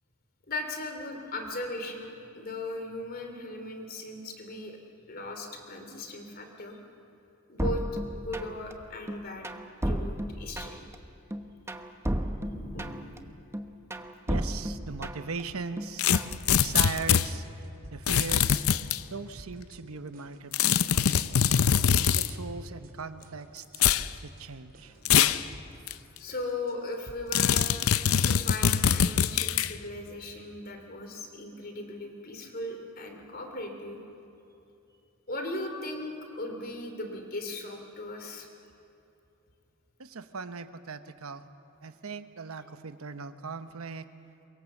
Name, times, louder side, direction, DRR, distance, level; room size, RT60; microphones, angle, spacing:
voice 1, 0.5-4.8 5.1-6.8 7.5-7.8 8.1-9.5 9.8-10.8 12.4-13.1 22.1-22.2 25.9-27.7 28.2-34.0 35.3-38.5, left 2 dB, 45° left, 4 dB, 2.9 m, -38 dB
sound 1, 7.6-8.7 9.1-11.0 11.3-13.2 13.5-15.4 15.8-16.4, right 1 dB, 10° right, 0.9 m, -33 dB
voice 2, 14.3-16.1 16.5-18.7 19.1-21.4 22.0-23.8 24.2-25.0 40.0-41.5 41.8-44.1, right 4 dB, 85° right, 10 dB, 1.0 m, -39 dB
sound 2, 16.0-17.3 18.1-19.0 20.5-22.3 23.7-24.1 25.1-25.4 25.9-26.0 27.3-29.7, left 8 dB, 85° left, 0.6 m, -23 dB
sound 3, 16.3-16.8 17.1-18.3 18.6-19.1 19.4-19.8 20.1-21.4 21.7-22.1 22.4-22.9 23.2-24.5 24.7-25.2 25.5-28.5, equal, 45° right, 3.9 m, -51 dB
24.0 x 23.0 x 7.3 m, 2.7 s
head